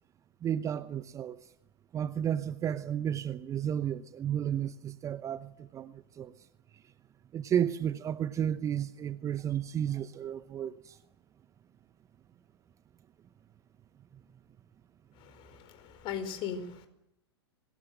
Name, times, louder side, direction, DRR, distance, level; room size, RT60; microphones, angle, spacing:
voice 1, 0.4-1.4 1.9-6.3 7.3-11.0, right 9 dB, 20° right, 0.8 m, -32 dB
voice 2, 15.2-16.9, left 7 dB, 35° left, 4.6 m, -39 dB
25.0 x 20.0 x 7.8 m
figure-of-eight pair, 100°, 14 cm